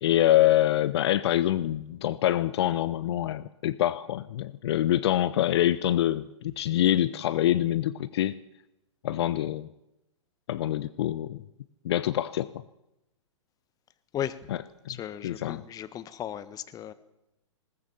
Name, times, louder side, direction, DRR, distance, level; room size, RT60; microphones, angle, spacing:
voice 1, 0.0-8.4 9.0-9.7 10.5-11.4 11.8-12.5 14.5-14.6 15.2-15.6, left 13 dB, 55° left, 17 dB, 0.8 m, -25 dB
voice 2, 14.9-16.9, left 10 dB, 25° left, 14 dB, 1.4 m, -35 dB
20.5 x 18.0 x 7.2 m, 0.89 s
hypercardioid pair, 120°, 16 cm